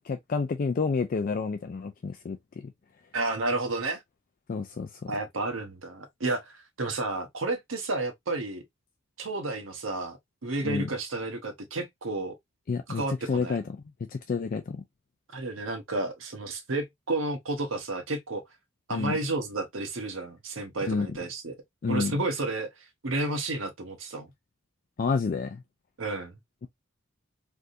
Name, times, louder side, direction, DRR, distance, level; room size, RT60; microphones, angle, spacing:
voice 1, 0.1-2.7 4.5-5.1 10.6-10.9 12.7-13.0 13.3-13.6 14.1-14.8 18.9-19.2 20.9-21.1 21.8-22.1 25.0-25.6, left 4 dB, 45° left, 0.3 m, -29 dB
voice 2, 3.1-4.0 5.1-8.6 9.2-10.2 10.4-12.3 12.9-13.6 15.3-18.4 18.9-21.6 21.9-22.7 23.0-24.3 26.0-26.3, right 2 dB, 75° right, 1.0 m, -31 dB
3.4 x 2.5 x 2.5 m
head